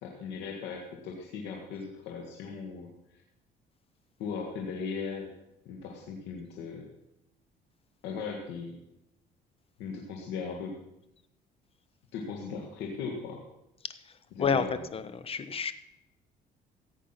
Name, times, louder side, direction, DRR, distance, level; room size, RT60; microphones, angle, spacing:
voice 1, 0.0-2.9 4.2-5.3 5.7-6.9 8.0-8.8 9.8-10.8 12.1-13.4 14.3-14.8, left 5 dB, 85° left, 0 dB, 1.8 m, -38 dB
voice 2, 14.9-15.7, left 6 dB, 35° left, 13 dB, 1.0 m, -29 dB
15.5 x 8.4 x 5.8 m, 0.87 s
cardioid pair, 110°, 18 cm